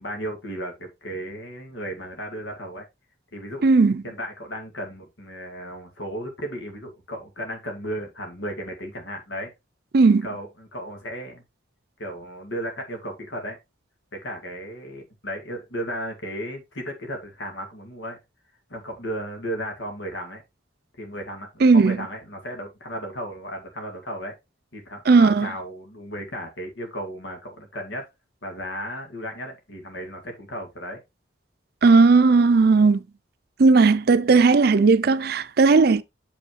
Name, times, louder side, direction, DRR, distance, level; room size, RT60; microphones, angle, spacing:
voice 1, 0.0-2.9 3.3-3.7 4.0-9.5 10.2-11.4 12.0-13.6 14.1-18.2 18.7-20.4 21.0-24.4 24.7-28.1 28.4-31.0, equal, 90° left, 2.2 m, -34 dB
voice 2, 3.6-4.0 9.9-10.3 21.6-22.0 25.1-25.5 31.8-33.0 33.6-36.0, right 4 dB, 55° right, 0.5 m, -16 dB
7.1 x 5.4 x 3.2 m
head